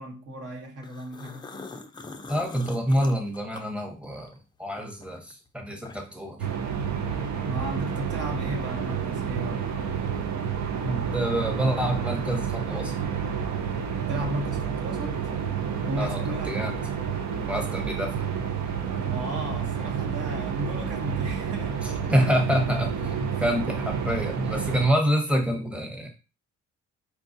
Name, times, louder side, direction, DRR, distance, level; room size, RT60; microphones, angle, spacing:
voice 1, 0.0-1.7 7.4-9.9 14.1-15.1 15.9-16.7 19.0-22.0 23.3-23.4, right 1 dB, 50° right, 1.0 m, -35 dB
sound 1, 0.8-4.4 4.8-6.3, left 3 dB, 15° left, 0.4 m, -43 dB
voice 2, 2.3-6.4 10.8-13.0 16.0-16.8 17.5-18.3 21.8-26.1, equal, 5° right, 0.9 m, -27 dB
sound 2, 6.4-24.9, right 7 dB, 70° right, 0.6 m, -30 dB
4.5 x 2.3 x 2.6 m
cardioid pair, 90°, 30 cm